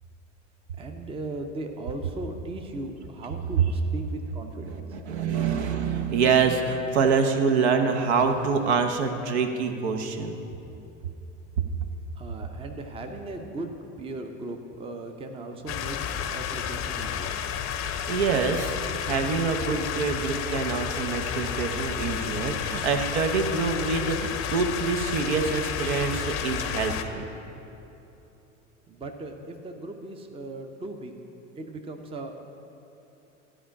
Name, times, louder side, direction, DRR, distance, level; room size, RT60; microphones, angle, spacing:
voice 1, 0.8-5.0 12.2-17.3 28.9-31.1 31.6-32.4, right 2 dB, 15° right, 5 dB, 0.7 m, -38 dB
voice 2, 4.6-10.4 18.1-27.3, right 5 dB, 60° right, 6 dB, 0.9 m, -26 dB
sound 1, 15.7-27.0, left 8 dB, 35° left, 0.7 m, -31 dB
12.5 x 5.0 x 8.7 m, 2.9 s
figure-of-eight pair, 75°, 38 cm